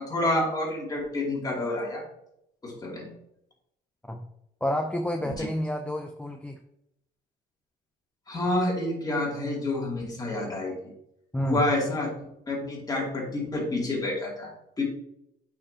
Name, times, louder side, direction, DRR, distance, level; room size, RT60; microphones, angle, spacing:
voice 1, 0.0-2.0 2.6-3.1 5.3-5.5 8.3-10.7 11.4-12.1 12.5-14.8, left 2 dB, 20° left, -2 dB, 2.5 m, -28 dB
voice 2, 4.6-6.6 11.3-11.6, left 1 dB, 5° left, 3 dB, 0.5 m, -29 dB
8.5 x 5.6 x 2.8 m, 0.78 s
cardioid pair, 110°, 17 cm